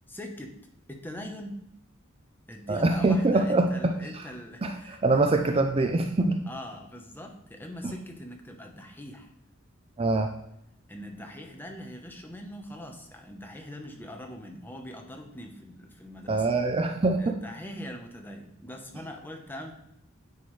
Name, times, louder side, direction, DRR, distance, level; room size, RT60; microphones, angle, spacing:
voice 1, 0.1-0.6 0.9-1.6 2.5-5.0 6.5-9.3 10.9-16.5 17.2-19.7, left 1 dB, 10° left, 2 dB, 0.9 m, -42 dB
voice 2, 2.7-3.9 4.6-6.4 7.8-7.9 10.0-10.3 16.3-17.3, right 2 dB, 30° right, 4 dB, 0.5 m, -24 dB
9.6 x 4.6 x 3.2 m, 0.80 s
head